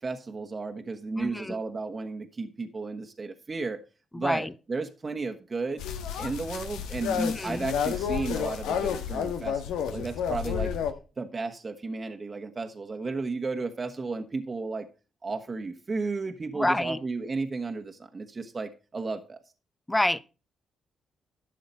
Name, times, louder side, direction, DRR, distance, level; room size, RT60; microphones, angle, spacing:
voice 1, 0.0-3.8 4.1-5.8 6.2-10.7 11.2-14.9 15.2-19.4, right 3 dB, 40° right, 1.4 m, -33 dB
voice 2, 1.2-1.6 4.1-4.5 7.1-7.7 16.5-17.0 19.9-20.2, left 1 dB, 15° left, 0.8 m, -27 dB
sound 1, 5.8-10.9, left 8 dB, 85° left, 1.2 m, -30 dB
12.5 x 6.7 x 5.4 m
supercardioid pair, 55°, 0 cm